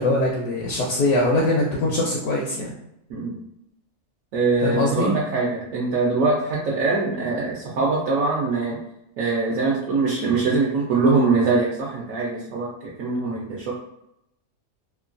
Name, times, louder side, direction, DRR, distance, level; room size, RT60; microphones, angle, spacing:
voice 1, 0.0-2.7 4.6-5.1, left 1 dB, 70° left, -3 dB, 1.1 m, -22 dB
voice 2, 3.1-3.4 4.3-8.8 9.2-13.7, right 3 dB, 70° right, -4 dB, 0.9 m, -23 dB
3.0 x 2.2 x 2.5 m, 0.80 s
omnidirectional pair, 1.7 m